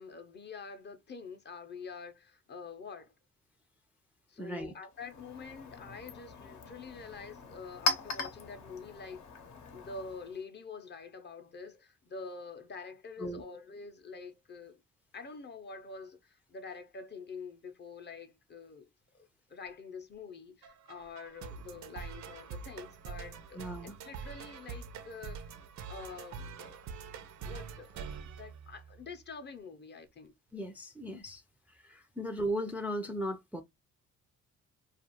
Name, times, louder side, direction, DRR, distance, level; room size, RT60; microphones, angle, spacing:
voice 1, 0.0-3.1 4.3-9.2 9.7-14.8 15.1-18.9 19.1-25.5 25.9-26.8 27.4-30.3, left 4 dB, 35° left, 0.6 m, -46 dB
voice 2, 4.4-4.7 13.2-13.4 23.5-24.0 30.5-31.4 31.7-33.6, right 1 dB, 5° right, 0.4 m, -37 dB
Chink clink, 4.9-10.4, left 3 dB, 70° left, 0.8 m, -39 dB
sound 1, 20.6-29.2, right 6 dB, 70° right, 0.5 m, -45 dB
2.4 x 2.4 x 2.8 m
cardioid pair, 90°, 30 cm